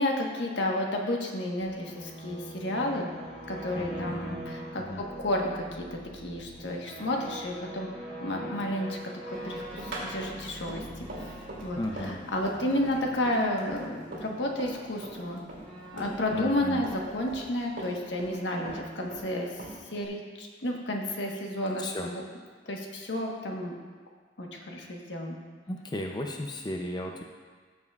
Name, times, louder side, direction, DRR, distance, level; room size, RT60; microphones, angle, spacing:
voice 1, 0.0-3.1 3.5-7.9 8.2-9.0 9.3-10.8 11.2-15.4 15.9-19.5 19.9-22.2 22.7-23.7 24.4-25.4, left 1 dB, 80° left, 0 dB, 1.3 m, -31 dB
sound 1, 1.6-18.2, right 1 dB, 5° left, 2.3 m, -44 dB
voice 2, 3.8-4.4 4.8-5.0 11.7-12.2 16.3-16.9 21.8-22.1 25.7-27.2, left 1 dB, 25° left, 2 dB, 0.5 m, -35 dB
Run, 9.3-14.8 15.0-16.6 16.8-18.4 18.7-20.1, right 2 dB, 75° right, 2.7 m, -41 dB
14.5 x 7.3 x 2.4 m, 1.5 s
head